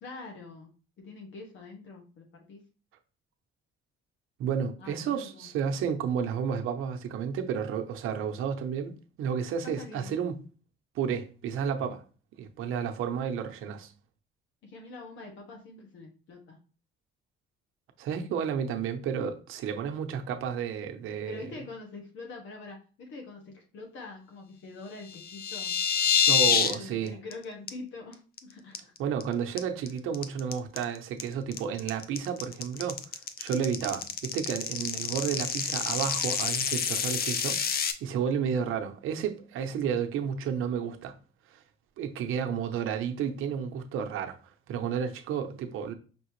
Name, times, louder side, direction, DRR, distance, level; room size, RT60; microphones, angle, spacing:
voice 1, 0.0-0.7 1.0-2.6 4.8-5.5 9.6-10.2 14.6-16.6 21.2-25.8 26.4-28.9, left 3 dB, 65° left, 1.2 m, -44 dB
voice 2, 4.4-10.4 10.9-12.0 12.4-13.9 18.0-21.5 26.3-27.1 29.0-33.0 33.4-41.1 42.0-44.4 44.7-45.9, right 7 dB, 75° right, 0.8 m, -31 dB
sound 1, 25.1-26.7 27.1-27.3 27.7-27.8 28.1-28.4 28.7-29.2 29.6-37.9, left 7 dB, 45° left, 0.5 m, -27 dB
5.3 x 2.8 x 3.1 m
cardioid pair, 130°, 21 cm